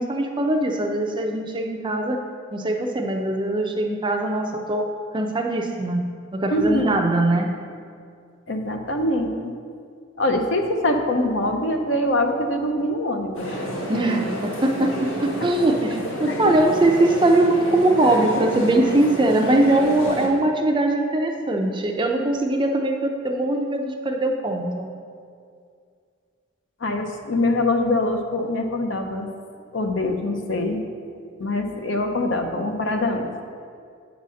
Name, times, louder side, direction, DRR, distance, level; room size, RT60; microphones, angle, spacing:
voice 1, 0.0-2.2 2.5-4.9 5.1-6.0 6.3-7.5 13.9-24.9, right 2 dB, 25° right, 3 dB, 0.5 m, -21 dB
voice 2, 6.5-6.9 8.5-9.5 10.2-13.5 16.3-16.5 26.8-29.3 29.7-30.8 31.4-33.4, left 1 dB, 65° left, 4 dB, 0.8 m, -23 dB
sound 1, 13.3-20.3, equal, 85° left, 1.8 m, -30 dB
8.4 x 4.1 x 6.3 m, 2.3 s
head